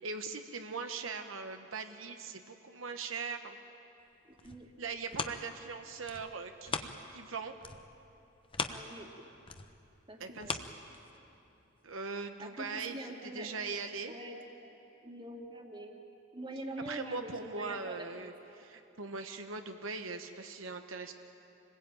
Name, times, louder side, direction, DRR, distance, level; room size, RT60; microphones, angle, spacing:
voice 1, 0.0-3.6 4.8-7.5 10.2-10.6 11.8-14.2 16.8-21.1, right 4 dB, 85° right, 6 dB, 1.1 m, -40 dB
sound 1, 4.1-7.3 7.6-11.4 11.9-12.0, left 4 dB, 25° left, 1.0 m, -41 dB
voice 2, 4.2-4.7 8.7-9.1 10.1-10.6 12.4-13.5 14.1-15.9 16.3-18.3, right 1 dB, 25° right, 2 dB, 2.3 m, -45 dB
26.5 x 20.5 x 9.1 m, 2.9 s
head